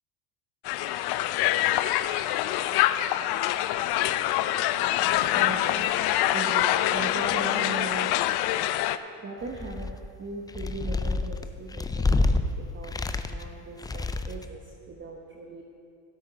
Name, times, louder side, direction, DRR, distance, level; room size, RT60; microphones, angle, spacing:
Crowd, 0.7-9.0, left 14 dB, 55° left, 0.6 m, -25 dB
voice 1, 5.3-5.9 6.3-8.2 9.2-9.9 10.2-15.6, right 3 dB, 25° right, 0 dB, 1.2 m, -38 dB
sound 1, 9.4-10.1 10.5-12.4 12.8-13.5 13.8-14.5, left 3 dB, 10° left, 0.3 m, -27 dB
16.5 x 8.0 x 3.9 m, 2.5 s
hypercardioid pair, 75°, 46 cm